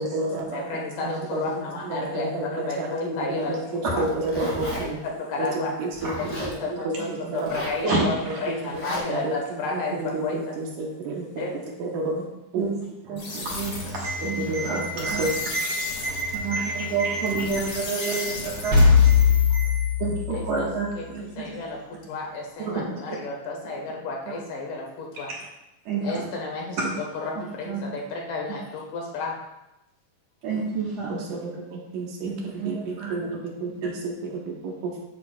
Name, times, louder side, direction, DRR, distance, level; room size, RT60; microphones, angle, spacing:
voice 1, 0.0-5.0 5.4-8.1 8.5-12.3 12.5-12.7 14.2-15.4 31.1-35.0, right 2 dB, 85° right, -1 dB, 2.8 m, -31 dB
voice 2, 0.5-4.0 4.8-5.7 6.2-6.7 7.0-7.1 7.3-8.2 8.4-10.6 11.4-11.5 19.5-19.6 20.3-20.7 21.0-25.3 26.0-26.8 27.1-29.4, left 3 dB, 80° left, -1 dB, 2.9 m, -32 dB
Zipper (clothing), 3.9-4.8 5.9-6.5 7.3-7.8 8.7-9.0, equal, 10° left, 0.9 m, -34 dB
voice 3, 7.8-8.4 12.6-12.7 13.1-15.3 15.5-19.2 19.5-19.7 20.0-20.9 21.1-21.6 22.6-22.8 25.3-25.4 25.9-26.3 26.8-26.9 27.7-27.8 30.4-31.2 32.3-33.4, right 3 dB, 60° right, -4 dB, 2.5 m, -29 dB
sound 1, 13.2-19.5, left 2 dB, 55° left, 1.9 m, -36 dB
sound 2, 18.7-20.8, left 6 dB, 40° right, 1.7 m, -19 dB
8.3 x 7.2 x 2.4 m, 0.91 s
omnidirectional pair, 3.7 m